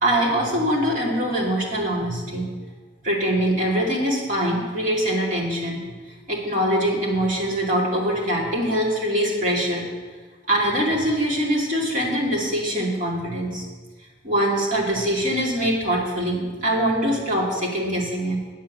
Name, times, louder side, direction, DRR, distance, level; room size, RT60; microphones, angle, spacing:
voice 1, 0.0-2.5 3.0-5.8 6.3-9.8 10.5-13.6 14.2-18.4, equal, 40° right, -4 dB, 2.7 m, -23 dB
9.5 x 7.7 x 7.3 m, 1.4 s
head